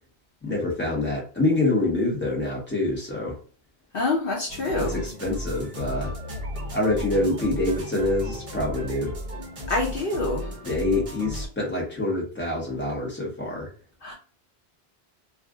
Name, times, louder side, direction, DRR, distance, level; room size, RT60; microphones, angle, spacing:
voice 1, 0.4-3.4 4.8-6.1 6.7-9.1 10.6-13.7, left 2 dB, 10° left, 1.1 m, -26 dB
voice 2, 3.9-5.0 9.7-10.5 14.0-14.1, left 2 dB, 60° left, 0.8 m, -26 dB
sound 1, 4.5-11.5, equal, 35° right, 0.7 m, -34 dB
2.4 x 2.4 x 3.5 m
omnidirectional pair, 1.1 m